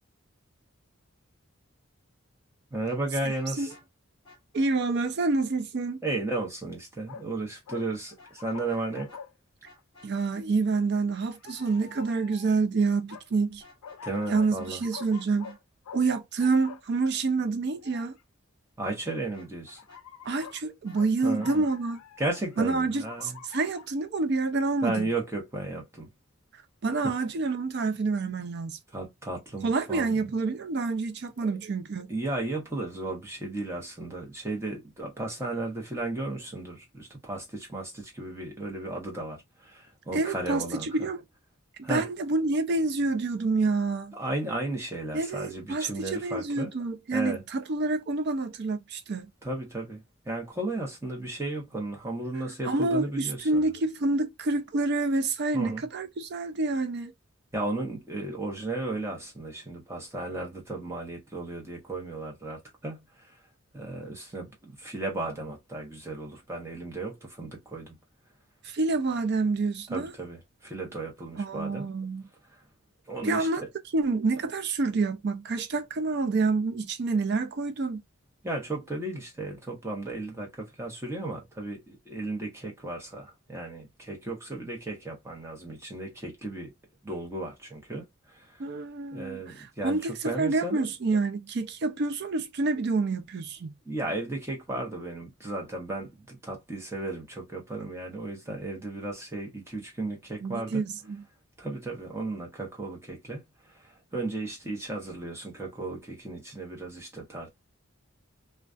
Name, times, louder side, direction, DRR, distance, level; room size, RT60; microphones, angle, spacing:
voice 1, 2.7-3.7 6.0-9.2 14.0-14.8 18.8-19.8 21.2-21.6 22.2-23.4 24.8-26.1 27.0-27.1 28.9-30.3 31.5-31.7 32.1-41.1 41.8-42.1 44.1-46.7 47.1-47.4 49.4-53.6 55.5-55.8 57.5-63.4 63.7-68.0 69.9-71.9 72.5-72.6 73.1-73.5 78.4-86.7 87.0-88.6 89.1-90.8 93.9-100.8 101.6-107.5, right 2 dB, 10° right, 0.8 m, -34 dB
Vehicle horn car horn honking, 2.8-3.8 4.2-4.7 8.2-8.8 9.1-9.2 9.6-10.1 13.5-14.3 14.5-14.7 15.1-15.6 19.3-20.4 20.8-21.3, left 2 dB, 20° left, 1.0 m, -54 dB
voice 2, 4.5-6.0 10.0-13.6 14.3-15.6 15.9-18.2 20.3-22.0 22.6-25.1 26.8-28.8 29.6-32.1 40.1-41.2 41.8-44.1 45.1-49.3 52.6-57.1 68.6-70.1 71.4-72.3 73.2-73.6 73.9-78.0 88.6-93.7 100.4-101.2, right 3 dB, 50° right, 0.4 m, -28 dB
sound 1, 7.1-7.3 7.7-9.3 9.8-9.9 11.1-12.6 13.1-13.3 13.8-15.6 15.9-16.1 16.4-16.8 17.8-18.2 19.1-19.2 19.8-20.6 20.9-21.1 21.4-22.6 22.9-23.9, left 7 dB, 90° left, 0.4 m, -46 dB
2.3 x 2.2 x 2.4 m
head